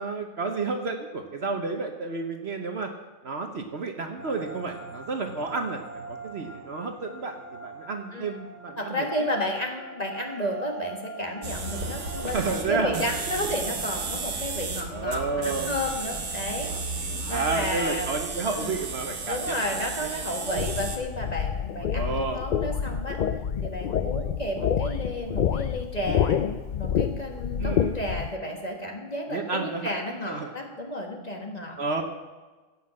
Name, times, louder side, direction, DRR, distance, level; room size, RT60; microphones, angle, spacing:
voice 1, 0.0-2.9 3.2-5.8 6.1-9.1 12.3-13.0 14.9-15.7 17.2-19.6 20.0-20.1 20.5-20.9 21.9-22.4 27.6-28.0 29.3-29.9 30.3-30.5 31.8-32.0, right 4 dB, 55° right, 5 dB, 1.2 m, -31 dB
sound 1, 4.2-12.5, right 3 dB, 60° left, 2.5 m, -42 dB
voice 2, 8.8-16.7 17.3-18.1 18.5-18.8 19.3-23.2 23.6-26.4 26.7-32.0, left 1 dB, 30° left, 1 dB, 1.7 m, -32 dB
sound 2, 11.4-21.0, right 4 dB, 80° right, 1.8 m, -33 dB
sound 3, 20.6-28.3, left 8 dB, 80° left, 0.4 m, -28 dB
15.5 x 5.8 x 7.7 m, 1.3 s
omnidirectional pair, 1.4 m